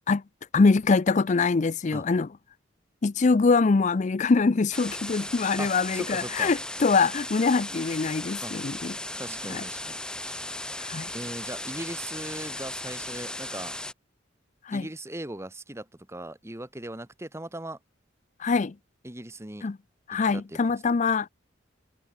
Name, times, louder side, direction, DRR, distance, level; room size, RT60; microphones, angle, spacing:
voice 1, 0.5-2.3 3.0-8.9 9.5-9.6 10.9-11.1 14.7-14.9 18.4-18.7 19.6-19.8 20.1-21.3, left 4 dB, 40° left, 0.4 m, -23 dB
sound 1, 4.7-13.9, left 1 dB, 5° left, 0.7 m, -36 dB
voice 2, 5.6-6.5 8.4-8.6 9.2-10.4 11.1-13.8 14.7-17.8 19.0-19.7 20.1-20.7, right 1 dB, 15° right, 1.4 m, -39 dB
head